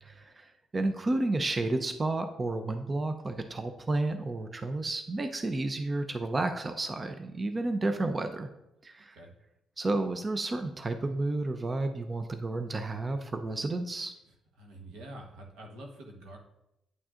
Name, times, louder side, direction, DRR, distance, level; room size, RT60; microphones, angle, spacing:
voice 1, 0.0-8.5 8.8-9.2 9.8-14.1, right 2 dB, 30° right, 7 dB, 0.5 m, -31 dB
voice 2, 14.3-16.4, right 1 dB, 85° right, 1 dB, 1.3 m, -47 dB
9.2 x 6.0 x 2.5 m, 0.88 s
cardioid pair, 90°, 0 cm